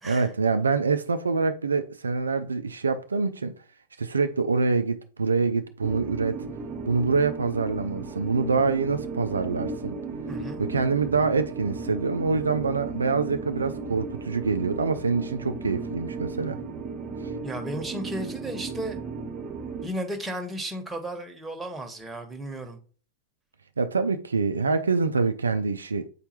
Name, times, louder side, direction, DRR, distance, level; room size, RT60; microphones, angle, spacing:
voice 1, 0.0-3.5 4.0-6.4 6.9-10.0 10.6-16.6 23.8-26.1, right 4 dB, 75° right, 0.4 m, -25 dB
sound 1, 5.8-19.9, right 4 dB, 35° right, 1.1 m, -35 dB
voice 2, 10.3-10.6 17.4-19.0 19.8-22.8, right 1 dB, 5° right, 1.2 m, -34 dB
8.2 x 4.4 x 2.9 m
figure-of-eight pair, 90°, 0 cm